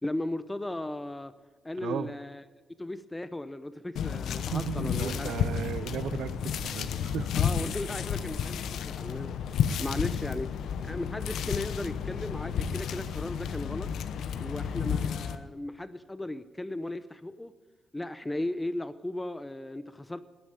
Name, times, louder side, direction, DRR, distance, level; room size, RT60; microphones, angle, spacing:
voice 1, 0.0-1.3 1.6-2.4 2.8-5.5 7.3-9.3 9.8-10.5 10.8-13.9 14.4-17.5 17.9-20.2, left 1 dB, 15° left, 13 dB, 0.8 m, -36 dB
sound 1, 4.0-15.4, left 8 dB, 75° left, 0.8 m, -32 dB
voice 2, 4.5-7.3, right 9 dB, 80° right, 15 dB, 0.7 m, -35 dB
12.0 x 10.0 x 8.9 m, 1.2 s
supercardioid pair, 60°, 0 cm